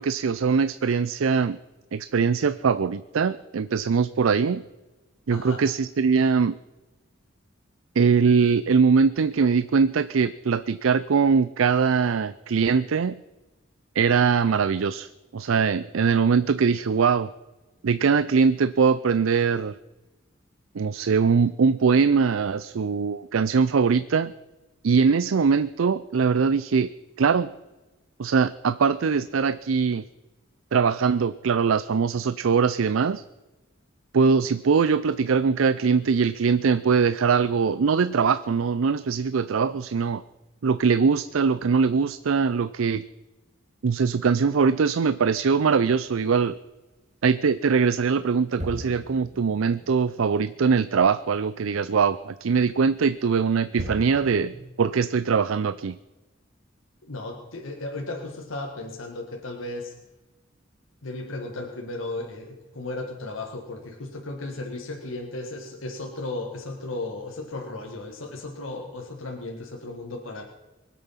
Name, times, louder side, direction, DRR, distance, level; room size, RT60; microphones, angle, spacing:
voice 1, 0.0-1.6 1.9-4.6 5.3-6.6 8.0-13.2 14.0-17.3 17.8-19.8 20.7-24.3 24.8-26.9 27.2-27.5 28.2-30.0 30.7-33.2 34.1-40.2 40.6-43.0 43.8-46.6 47.2-56.0, right 5 dB, 85° right, 14 dB, 0.5 m, -22 dB
voice 2, 5.3-5.7 57.0-60.0 61.0-70.4, left 2 dB, 85° left, 1 dB, 1.8 m, -35 dB
sound 1, 48.6-51.5 51.8-51.9 53.8-54.7, equal, 35° right, 2.0 m, -39 dB
23.5 x 8.4 x 5.7 m, 1.1 s
head